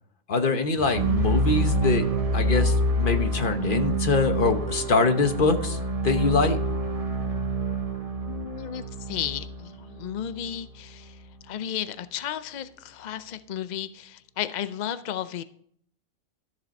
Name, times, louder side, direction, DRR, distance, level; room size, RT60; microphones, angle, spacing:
voice 1, 0.3-2.1 2.3-6.6, left 4 dB, 40° left, 7 dB, 1.2 m, -24 dB
sound 1, 0.8-10.8, right 1 dB, 25° right, 1.4 m, -27 dB
voice 2, 8.3-15.4, left 10 dB, 70° left, 12 dB, 0.4 m, -34 dB
13.5 x 7.3 x 5.3 m, 0.64 s
omnidirectional pair, 1.4 m